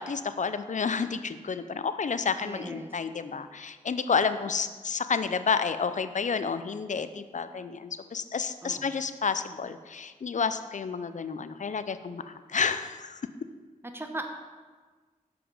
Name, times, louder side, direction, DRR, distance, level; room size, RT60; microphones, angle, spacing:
voice 1, 0.0-13.2, left 5 dB, 60° left, 12 dB, 0.5 m, -30 dB
voice 2, 2.4-2.9 8.6-8.9 13.9-14.3, right 1 dB, 15° right, 5 dB, 1.0 m, -38 dB
7.2 x 5.8 x 5.5 m, 1.4 s
cardioid pair, 40°, 14 cm